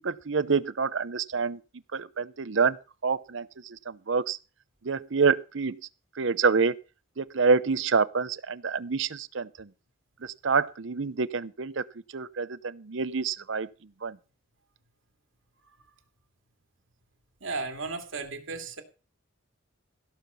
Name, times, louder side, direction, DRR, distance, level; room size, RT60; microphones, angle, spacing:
voice 1, 0.0-1.6 1.9-2.8 3.0-4.4 4.8-5.8 6.2-6.8 7.2-9.7 10.2-11.8 12.1-13.7 14.0-14.2, right 5 dB, 70° right, 16 dB, 0.7 m, -27 dB
voice 2, 17.4-18.8, right 3 dB, 85° right, 5 dB, 2.6 m, -34 dB
16.5 x 5.8 x 6.9 m, 0.33 s
head